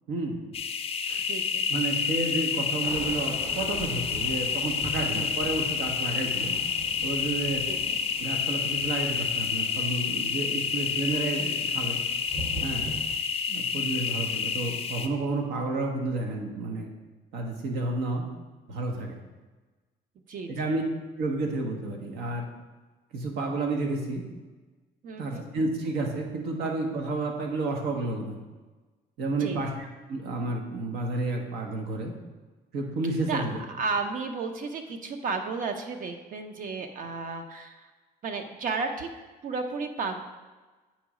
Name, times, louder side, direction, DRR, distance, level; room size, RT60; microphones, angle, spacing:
voice 1, 0.1-0.4 1.1-1.2 1.7-6.6 7.0-7.6 8.2-12.0 12.6-12.9 13.5-16.9 17.3-18.2 18.7-19.2 20.5-20.8 21.2-22.4 23.1-24.2 25.2-28.4 29.2-32.1 32.7-33.6, right 2 dB, 80° right, 2 dB, 1.2 m, -31 dB
sound 1, 0.5-15.1, left 6 dB, 35° left, 0.5 m, -29 dB
voice 2, 1.3-1.6 7.6-8.0 20.3-20.8 25.0-25.5 29.4-29.6 33.3-37.9 38.2-39.1 39.4-40.2, right 4 dB, 55° right, 6 dB, 0.8 m, -33 dB
Thunder / Rain, 2.8-13.2, right 1 dB, 20° right, 0.7 m, -42 dB
8.7 x 3.1 x 4.9 m, 1.3 s
cardioid pair, 110°, 17 cm